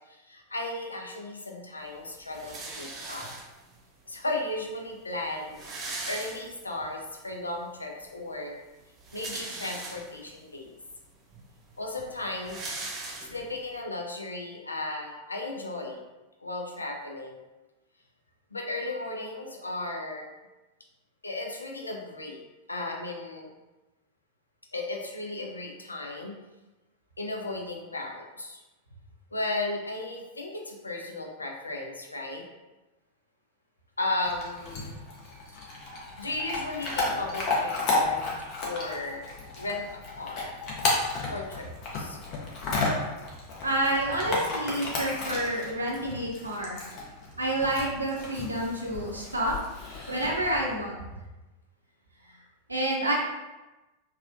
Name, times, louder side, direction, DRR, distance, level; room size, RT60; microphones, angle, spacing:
voice 1, 0.1-3.3 4.1-8.6 9.1-10.7 11.8-12.6 13.3-16.0 16.4-17.4 18.5-20.3 21.2-22.4 22.7-23.5 24.7-26.4 27.2-28.6 29.3-32.4 34.0-35.0 36.2-38.2 38.6-39.3 39.6-40.5 41.3-42.2, left 2 dB, 80° left, 1 dB, 0.4 m, -35 dB
sound 1, 2.3-3.8 4.6-4.7 4.9-5.0 5.3-6.9 7.3-7.4 8.8-10.3 11.0-11.1 11.3-13.7, right 2 dB, 25° right, 0.6 m, -39 dB
Chewing mastication / Dog, 34.2-50.7, left 2 dB, 40° left, 0.7 m, -33 dB
voice 2, 43.6-46.8 47.4-49.5 50.1-51.0 52.7-53.1, right 1 dB, 80° right, -2 dB, 0.6 m, -29 dB
3.4 x 2.2 x 2.5 m, 1.1 s
figure-of-eight pair, 90°, 0 cm